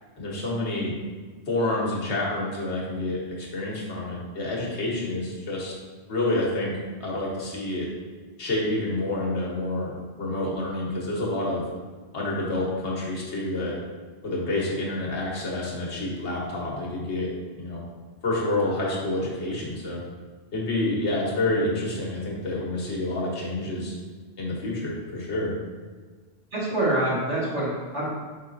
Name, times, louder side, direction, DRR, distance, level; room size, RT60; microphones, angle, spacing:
voice 1, 0.2-1.0 1.5-5.7 6.1-6.7 7.0-7.9 8.4-11.6 12.1-13.7 14.2-17.3 17.6-17.8 18.2-20.0 20.5-23.9 24.4-25.5, left 2 dB, 85° left, -4 dB, 1.3 m, -28 dB
voice 2, 26.5-28.0, right 1 dB, 85° right, -8 dB, 2.0 m, -25 dB
5.2 x 4.0 x 2.5 m, 1.4 s
omnidirectional pair, 1.1 m